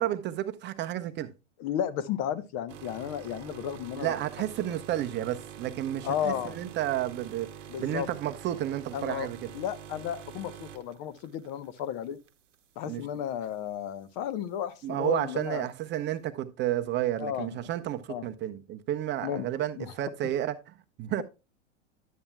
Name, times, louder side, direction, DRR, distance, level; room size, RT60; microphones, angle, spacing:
voice 1, 0.0-1.3 4.0-7.5 7.8-9.5 12.8-13.1 14.8-21.2, right 12 dB, 30° right, 0.6 m, -31 dB
voice 2, 1.6-4.2 6.0-6.6 7.7-8.1 8.9-9.3 9.5-12.2 12.8-15.7 17.2-17.5 18.1-18.3 19.2-19.5 19.8-19.9, left 10 dB, 45° left, 0.9 m, -33 dB
sound 1, 2.7-11.9 12.3-12.5 13.4-13.5, right 9 dB, 75° right, 0.9 m, -46 dB
11.0 x 8.5 x 2.2 m
hypercardioid pair, 100°, 38 cm